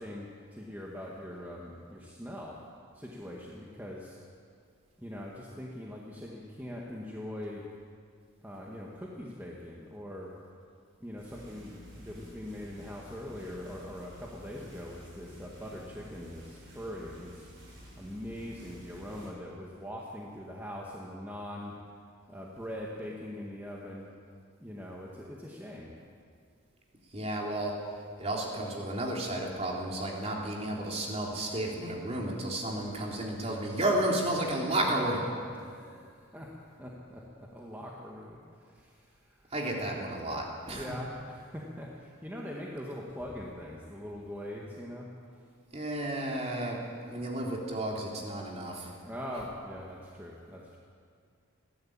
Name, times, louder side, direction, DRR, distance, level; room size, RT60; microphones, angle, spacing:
voice 1, 0.0-2.6 2.9-4.2 5.0-7.7 8.4-10.3 11.0-11.7 12.0-17.5 18.0-21.7 22.3-24.1 24.6-25.9 35.5-36.5 36.8-39.4 39.7-40.3 40.7-45.1 49.0-50.8, left 1 dB, 10° right, -3 dB, 1.8 m, -42 dB
sound 1, 11.2-19.3, equal, 60° right, 7.5 m, -51 dB
voice 2, 27.1-27.7 28.2-35.3 39.5-40.9 45.7-46.8 47.1-48.9, right 1 dB, 30° right, -2 dB, 3.4 m, -32 dB
20.5 x 15.5 x 8.8 m, 2.3 s
head